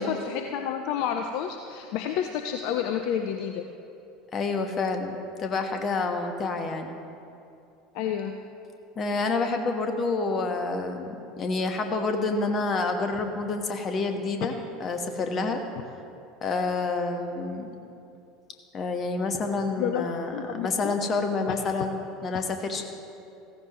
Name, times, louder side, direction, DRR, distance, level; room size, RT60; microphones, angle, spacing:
voice 1, 0.0-3.6 7.9-8.3 19.8-20.0 20.3-21.0 21.5-21.6, left 9 dB, 55° left, 6 dB, 0.5 m, -30 dB
voice 2, 4.3-6.9 9.0-14.5 14.8-15.6 16.4-17.7 18.7-22.8, left 3 dB, 35° left, 5 dB, 1.3 m, -28 dB
15.0 x 15.0 x 3.0 m, 2.7 s
figure-of-eight pair, 70°, 0 cm